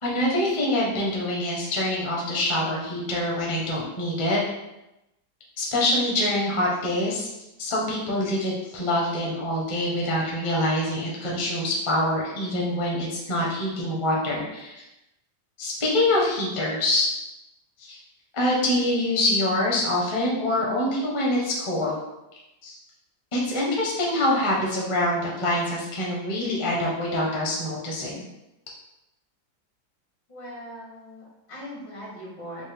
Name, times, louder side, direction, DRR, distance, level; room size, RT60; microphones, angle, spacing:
voice 1, 0.0-4.4 5.6-7.3 7.6-14.8 15.6-17.1 17.8-18.0 18.3-22.0 22.6-22.7 23.3-28.2, left 1 dB, 30° left, -4 dB, 0.6 m, -25 dB
voice 2, 30.3-32.7, equal, 75° left, -6 dB, 2.3 m, -40 dB
5.1 x 2.2 x 3.4 m, 0.93 s
omnidirectional pair, 2.0 m